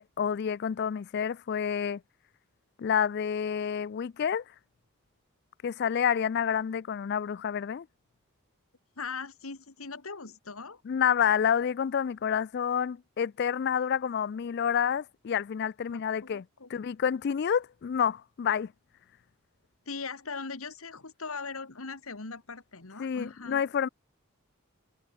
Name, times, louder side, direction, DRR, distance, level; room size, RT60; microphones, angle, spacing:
voice 1, 0.0-2.0 2.8-4.4 5.6-7.9 10.9-16.4 16.7-18.7 23.0-23.9, left 8 dB, 50° left, 0.3 m, -28 dB
voice 2, 9.0-10.8 15.9-16.8 19.9-23.6, left 4 dB, 75° left, 1.8 m, -40 dB
head